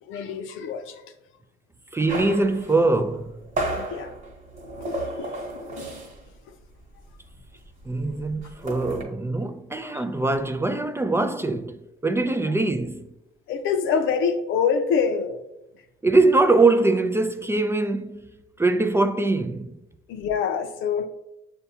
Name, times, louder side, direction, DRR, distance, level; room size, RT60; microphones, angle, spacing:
voice 1, 0.0-1.0 3.8-4.1 5.2-5.6 8.1-8.2 9.9-10.0 13.5-15.5 20.1-21.1, left 6 dB, 90° left, 0.5 m, -26 dB
voice 2, 1.9-3.4 7.8-13.1 16.0-18.3 18.6-19.8, right 2 dB, 15° right, 0.3 m, -22 dB
sound 1, 2.1-6.3 6.6-6.8 7.1-9.0, right 1 dB, 40° right, 1.1 m, -33 dB
6.6 x 2.3 x 2.7 m
cardioid pair, 90°, 20 cm